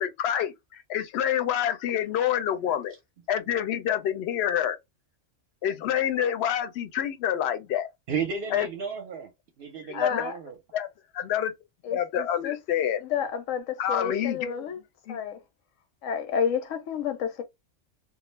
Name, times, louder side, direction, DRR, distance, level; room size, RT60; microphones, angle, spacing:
voice 1, 0.0-2.9 3.3-4.8 5.6-7.9 8.5-8.7 10.0-10.2 10.7-10.9 11.1-11.5 11.9-13.0 13.8-14.6 15.1-15.2, left 10 dB, 65° left, 0.8 m, -27 dB
voice 2, 8.1-9.3 9.6-10.6, right 6 dB, 60° right, 0.7 m, -33 dB
voice 3, 9.9-10.3 11.8-12.6 13.0-14.8 15.1-15.4 16.0-17.4, left 7 dB, 90° left, 1.0 m, -30 dB
2.4 x 2.0 x 3.1 m
omnidirectional pair, 1.3 m